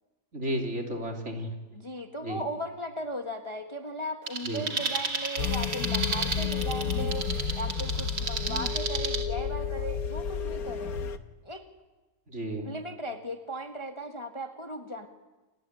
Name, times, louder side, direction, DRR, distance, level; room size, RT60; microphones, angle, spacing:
voice 1, 0.3-1.5 2.2-2.4 4.4-4.7 12.3-12.7, right 1 dB, 40° right, 2 dB, 3.8 m, -33 dB
voice 2, 1.7-11.0 11.4-11.6 12.6-15.1, equal, 20° left, 5 dB, 1.4 m, -37 dB
sound 1, 4.3-9.2, right 4 dB, 85° right, 3.2 m, -33 dB
sound 2, 5.4-11.2, left 6 dB, 60° left, 1.5 m, -31 dB
30.0 x 20.0 x 9.9 m, 1.2 s
omnidirectional pair, 1.9 m